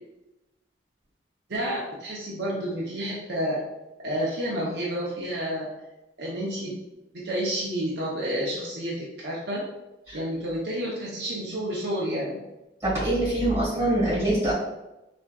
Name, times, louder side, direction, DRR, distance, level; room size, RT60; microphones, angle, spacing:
voice 1, 1.5-3.6 4.0-5.7 6.2-6.7 7.2-9.6 10.1-12.4, equal, 60° right, -5 dB, 0.5 m, -30 dB
voice 2, 12.8-14.5, right 1 dB, 15° right, -7 dB, 1.5 m, -24 dB
3.4 x 2.5 x 2.2 m, 0.96 s
head